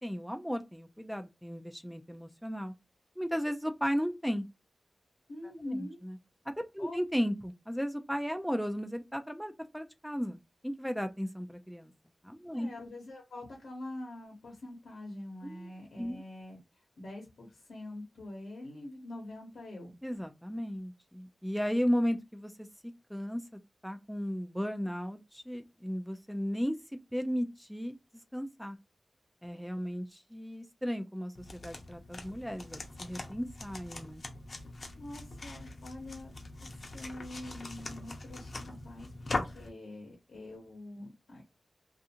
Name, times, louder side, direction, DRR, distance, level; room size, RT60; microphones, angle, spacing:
voice 1, 0.0-2.7 3.2-4.5 5.8-6.2 6.7-11.9 12.2-12.7 15.4-15.7 16.0-16.2 20.0-22.7 23.1-26.8 27.1-27.9 28.3-28.8 29.4-34.2, equal, ahead, 0.3 m, -35 dB
voice 2, 5.3-6.0 6.8-7.0 12.5-16.6 17.0-19.9 34.9-36.3 36.9-39.1 39.4-41.4, left 1 dB, 90° left, 0.9 m, -44 dB
sound 1, 31.4-39.7, left 2 dB, 55° left, 0.6 m, -42 dB
2.4 x 2.4 x 2.7 m
wide cardioid pair, 70°, 0 cm